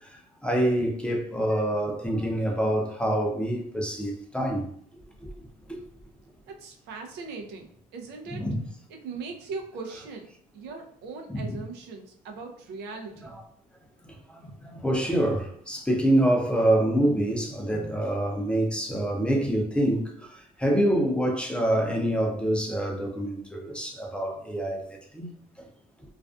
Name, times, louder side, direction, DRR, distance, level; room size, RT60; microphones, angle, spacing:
voice 1, 0.4-4.7 8.3-8.6 11.3-11.6 14.6-20.1 20.6-24.8 25.1-25.3, right 1 dB, 5° left, 0.5 m, -26 dB
voice 2, 6.5-8.5 8.9-13.4, right 4 dB, 85° right, 0.5 m, -40 dB
2.4 x 2.2 x 2.4 m
cardioid pair, 110°, 17 cm